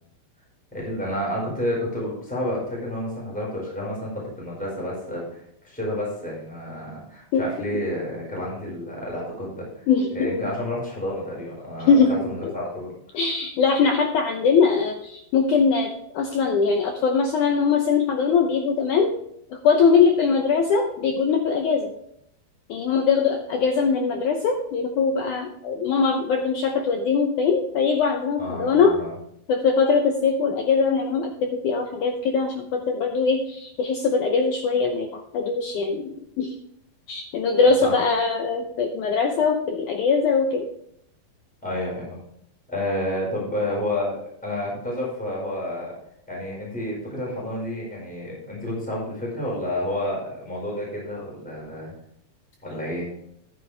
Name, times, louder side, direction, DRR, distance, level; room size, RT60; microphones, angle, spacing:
voice 1, 0.7-9.8 10.1-12.9 28.4-29.1 37.8-38.0 41.6-42.2 42.7-46.0 46.3-51.9 52.6-53.1, left 1 dB, ahead, -4 dB, 4.5 m, -30 dB
voice 2, 9.9-10.4 11.9-12.2 12.4-12.5 13.1-19.1 19.6-21.9 22.7-28.9 29.5-36.5 37.1-40.7, left 5 dB, 80° left, 4 dB, 1.8 m, -21 dB
12.0 x 9.4 x 3.3 m, 0.73 s
omnidirectional pair, 4.6 m